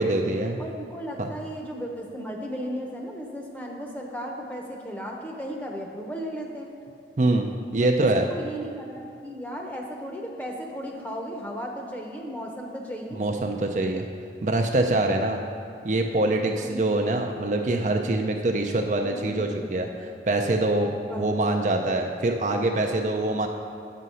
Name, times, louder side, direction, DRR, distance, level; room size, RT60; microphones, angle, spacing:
voice 1, 0.0-0.6 1.2-1.3 7.2-8.3 13.1-14.1 14.4-15.4 15.8-23.5, right 2 dB, 40° right, 3 dB, 0.5 m, -24 dB
voice 2, 0.6-6.7 7.8-13.3 15.0-15.2 16.5-16.8 19.0-19.7 21.0-21.4, equal, 10° left, 0 dB, 0.8 m, -36 dB
8.5 x 6.3 x 5.5 m, 2.5 s
head